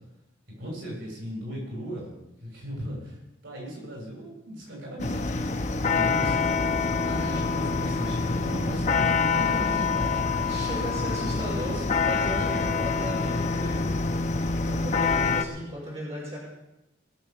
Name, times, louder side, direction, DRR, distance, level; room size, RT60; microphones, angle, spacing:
voice 1, 0.6-2.1 2.4-3.2 3.4-11.8 12.4-12.8, equal, 80° right, -2 dB, 6.6 m, -37 dB
sound 1, 5.0-15.4, left 4 dB, 40° left, 0.7 m, -26 dB
voice 2, 8.3-8.6 9.4-9.7 10.5-13.9 14.7-16.4, equal, 30° right, -5 dB, 5.5 m, -36 dB
20.5 x 7.1 x 6.9 m, 0.92 s
head